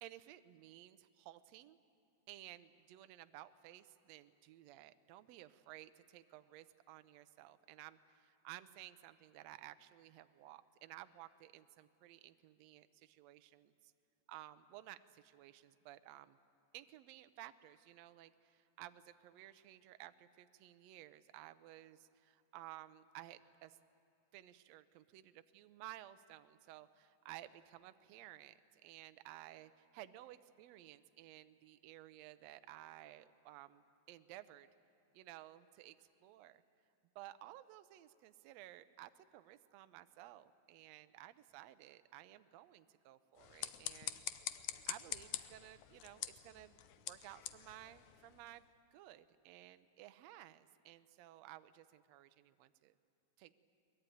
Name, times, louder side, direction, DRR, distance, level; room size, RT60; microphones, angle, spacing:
voice 1, 0.0-1.8 2.3-13.9 14.3-16.4 16.7-23.8 24.3-34.7 35.1-36.6 37.1-44.2 44.9-52.9 53.4-53.5, right 14 dB, 85° right, 11 dB, 1.5 m, -56 dB
sound 1, 43.3-48.6, left 13 dB, 75° left, 1.9 m, -46 dB
22.5 x 21.5 x 9.3 m, 2.5 s
omnidirectional pair, 3.9 m